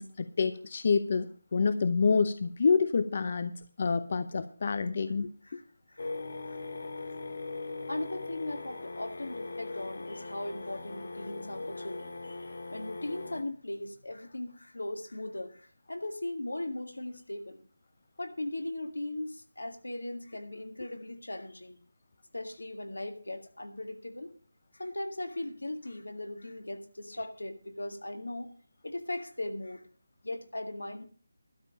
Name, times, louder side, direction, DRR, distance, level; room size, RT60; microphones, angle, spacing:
voice 1, 0.0-5.6, left 5 dB, 45° left, 12 dB, 0.7 m, -28 dB
sound 1, 6.0-13.4, left 3 dB, 65° left, 2.0 m, -40 dB
voice 2, 7.9-17.6 18.2-21.8 22.3-24.3 24.7-28.5 28.8-29.8 30.2-31.0, left 1 dB, 90° left, 7 dB, 1.9 m, -38 dB
12.5 x 5.3 x 8.6 m, 0.43 s
figure-of-eight pair, 165°, 0 cm